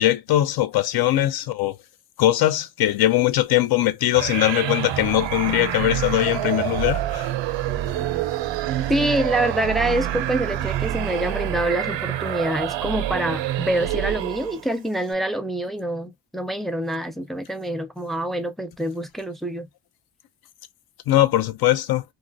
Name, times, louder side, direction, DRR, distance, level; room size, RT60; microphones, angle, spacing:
voice 1, 0.0-1.7 2.2-7.3 21.1-22.0, left 14 dB, 55° left, 0.5 m, -21 dB
sound 1, 4.1-14.7, right 13 dB, 75° right, 0.5 m, -27 dB
voice 2, 8.9-19.7, right 1 dB, ahead, 0.3 m, -26 dB
2.3 x 2.1 x 2.5 m
supercardioid pair, 60°, 46 cm